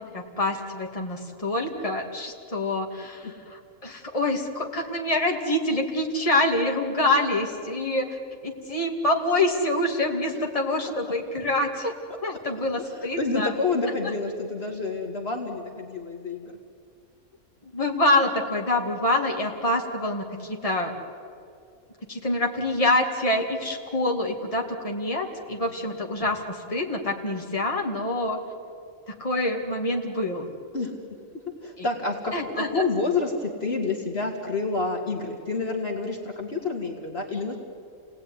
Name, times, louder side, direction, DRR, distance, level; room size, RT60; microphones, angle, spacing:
voice 1, 0.0-8.2 8.4-11.9 12.2-13.5 17.7-20.9 22.1-28.4 29.1-30.5 31.8-31.9 32.3-32.8, left 1 dB, 25° left, 0 dB, 2.5 m, -26 dB
voice 2, 12.8-16.5 25.6-25.7 30.7-30.9 31.6-37.6, left 3 dB, 50° left, 2 dB, 2.4 m, -28 dB
29.5 x 19.0 x 9.8 m, 2.4 s
omnidirectional pair, 1.4 m